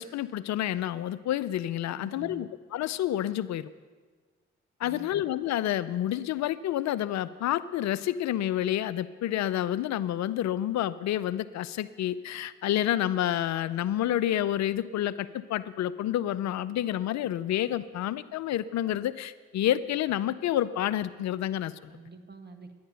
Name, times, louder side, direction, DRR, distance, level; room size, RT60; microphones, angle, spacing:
voice 1, 0.0-3.7 4.8-21.7, left 12 dB, 70° left, 17 dB, 0.5 m, -29 dB
voice 2, 1.9-2.5 4.8-5.2 21.9-22.8, right 3 dB, 35° right, 5 dB, 1.7 m, -47 dB
11.5 x 10.0 x 6.8 m, 1.4 s
hypercardioid pair, 40°, 29 cm